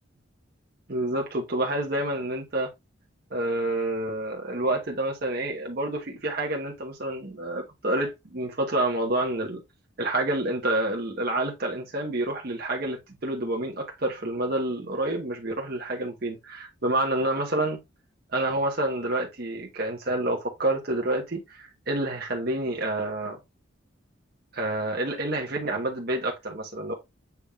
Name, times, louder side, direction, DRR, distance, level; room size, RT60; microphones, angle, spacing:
voice 1, 0.9-2.7 3.3-9.6 10.0-17.8 18.3-23.4 24.5-26.9, right 1 dB, 50° right, 0.9 m, -28 dB
6.9 x 3.5 x 2.2 m
head